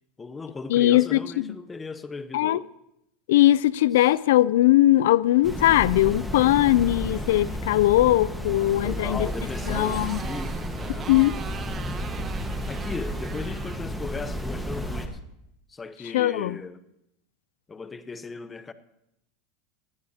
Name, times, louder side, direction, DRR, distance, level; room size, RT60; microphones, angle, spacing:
voice 1, 0.2-2.7 8.8-11.1 12.6-15.2 15.7-16.8 17.7-18.7, left 4 dB, 15° left, 0.8 m, -37 dB
voice 2, 0.7-1.5 2.3-2.6 3.3-9.3 9.7-10.2 11.1-11.3 16.1-16.6, left 15 dB, 80° left, 0.4 m, -20 dB
sound 1, 5.4-15.1, equal, ahead, 1.5 m, -32 dB
Motorcycle, 8.5-14.9, right 6 dB, 30° right, 1.0 m, -42 dB
19.5 x 14.0 x 2.9 m
supercardioid pair, 120°, 0 cm